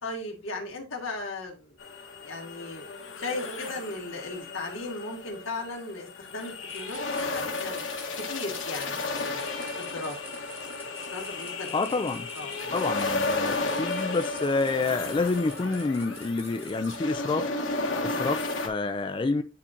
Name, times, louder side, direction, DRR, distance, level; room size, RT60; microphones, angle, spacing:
voice 1, 0.0-1.8 2.2-2.8 3.2-7.8 8.2-9.5 9.8-10.2 11.1-12.0 12.3-12.5, left 2 dB, 90° left, 2.0 m, -37 dB
sound 1, 1.8-18.7, left 3 dB, 70° left, 1.3 m, -33 dB
sound 2, 6.7-17.0, right 2 dB, 10° right, 1.1 m, -49 dB
voice 2, 11.7-12.3 12.7-17.5 18.0-19.4, left 3 dB, 25° left, 0.3 m, -28 dB
10.0 x 3.8 x 2.6 m
head